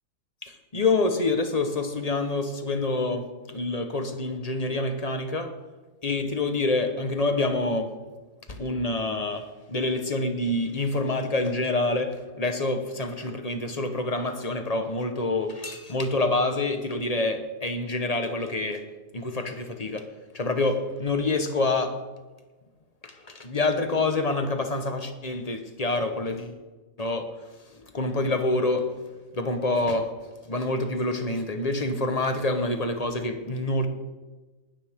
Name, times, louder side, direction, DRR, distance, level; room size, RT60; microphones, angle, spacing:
voice 1, 0.4-5.5 6.0-7.9 8.5-18.9 19.1-20.1 20.3-22.0 23.0-26.5 27.0-27.4 27.9-28.9 29.3-30.2 30.5-33.9, left 2 dB, 25° left, 7 dB, 1.2 m, -27 dB
19.5 x 12.5 x 3.7 m, 1.2 s
omnidirectional pair, 1.7 m